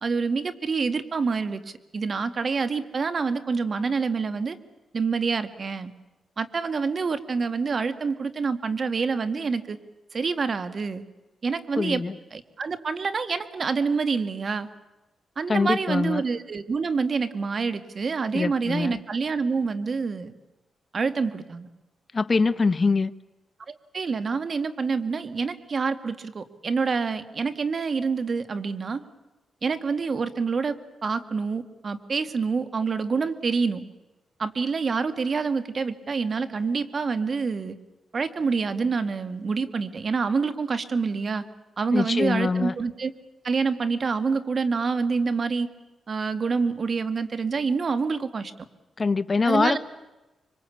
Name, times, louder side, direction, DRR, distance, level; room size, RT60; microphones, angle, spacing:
voice 1, 0.0-4.6 4.9-5.9 6.4-9.8 10.1-11.0 11.4-12.0 12.3-14.7 15.4-20.3 20.9-21.7 23.7-29.0 29.6-33.8 34.4-37.8 38.1-41.4 41.8-43.1 43.4-45.7 46.1-48.5 49.5-49.8, right 4 dB, 50° right, 2.0 m, -27 dB
voice 2, 11.8-12.2 15.5-16.2 18.3-19.0 22.1-23.1 41.9-42.7 49.0-49.8, left 4 dB, 35° left, 1.0 m, -23 dB
25.5 x 24.5 x 8.6 m
cardioid pair, 80°, 0 cm